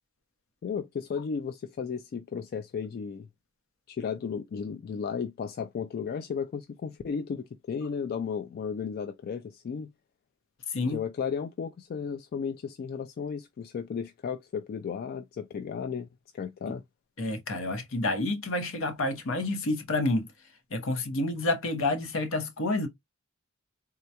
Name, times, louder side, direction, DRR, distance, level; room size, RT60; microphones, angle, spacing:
voice 1, 0.6-3.3 3.9-9.9 10.8-16.1 16.3-16.8, left 6 dB, 45° left, 0.3 m, -34 dB
voice 2, 10.7-11.0 17.2-20.3 20.7-22.9, left 2 dB, 65° left, 0.8 m, -29 dB
3.7 x 2.2 x 2.7 m
head